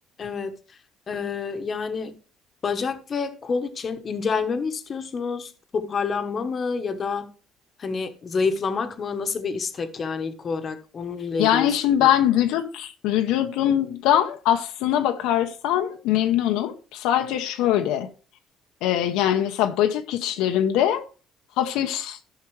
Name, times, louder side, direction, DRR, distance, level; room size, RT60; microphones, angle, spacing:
voice 1, 0.2-0.8 1.1-2.1 2.6-7.3 7.8-12.1, left 5 dB, 35° left, 1.0 m, -28 dB
voice 2, 11.4-18.1 18.8-21.0 21.6-22.2, left 11 dB, 90° left, 0.8 m, -22 dB
14.0 x 5.7 x 3.2 m
cardioid pair, 125°, 0 cm